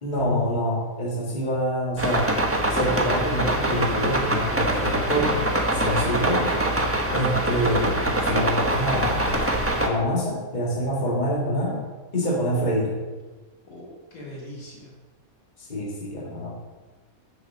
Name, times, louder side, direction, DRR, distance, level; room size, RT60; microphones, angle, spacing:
voice 1, 0.0-2.3 2.7-5.4 5.7-6.6 7.1-9.3 9.8-11.8 12.1-12.9 15.6-16.5, equal, 30° left, -2 dB, 1.8 m, -26 dB
sound 1, 2.0-9.9, right 1 dB, 10° right, 0.9 m, -24 dB
voice 2, 13.7-14.9, left 1 dB, 80° left, -2 dB, 2.5 m, -39 dB
6.9 x 6.8 x 6.2 m, 1.3 s
omnidirectional pair, 1.5 m